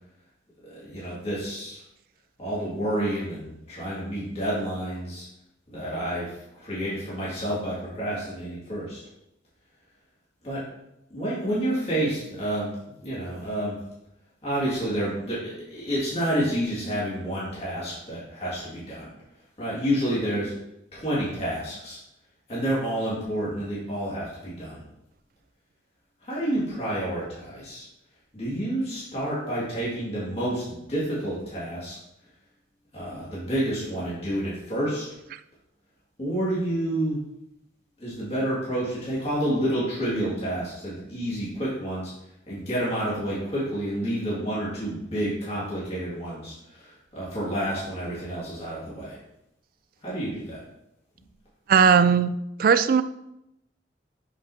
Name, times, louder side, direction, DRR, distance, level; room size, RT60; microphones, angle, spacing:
voice 1, 0.6-1.8 2.4-5.3 5.7-9.0 10.4-10.7 11.1-12.7 13.0-13.8 14.4-19.1 19.6-20.5 20.9-22.0 22.5-24.8 26.2-27.8 28.3-32.0 32.9-35.1 36.2-37.2 38.0-42.1 42.5-49.2 50.0-50.6, right 1 dB, 35° left, -8 dB, 2.2 m, -29 dB
voice 2, 51.7-53.0, right 6 dB, 55° right, 13 dB, 0.3 m, -18 dB
7.2 x 5.1 x 2.8 m, 0.84 s
head